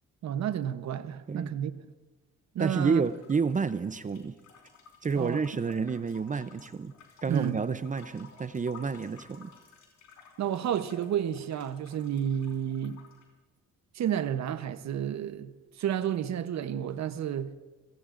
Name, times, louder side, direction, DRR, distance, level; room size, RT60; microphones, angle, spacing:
voice 1, 0.2-1.7 2.5-3.0 5.2-5.4 7.3-7.6 10.4-13.0 13.9-17.5, right 9 dB, 65° right, 0.9 m, -31 dB
sound 1, 2.6-13.2, left 5 dB, 65° left, 4.4 m, -55 dB
voice 2, 2.6-4.4 5.0-6.9 7.2-9.5, right 5 dB, 25° right, 0.6 m, -29 dB
28.5 x 18.5 x 2.6 m
cardioid pair, 90°, 30 cm